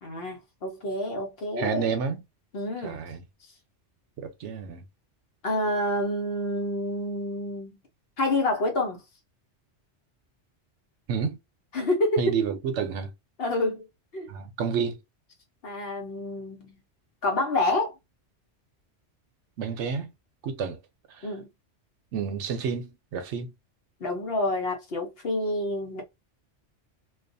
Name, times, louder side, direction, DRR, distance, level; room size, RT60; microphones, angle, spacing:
voice 1, 0.0-2.0 2.5-3.0 5.4-7.8 8.2-9.0 11.7-12.4 13.4-13.9 14.1-14.3 15.6-16.8 17.2-17.9 21.2-21.5 24.0-26.0, left 1 dB, 60° left, 1.0 m, -28 dB
voice 2, 1.6-2.2 2.8-3.2 4.2-4.8 11.1-11.4 12.2-13.1 14.3-15.0 19.6-20.1 20.4-20.8 21.1-21.2 22.1-23.5, right 6 dB, 75° right, 0.9 m, -30 dB
2.3 x 2.3 x 2.6 m
omnidirectional pair, 1.2 m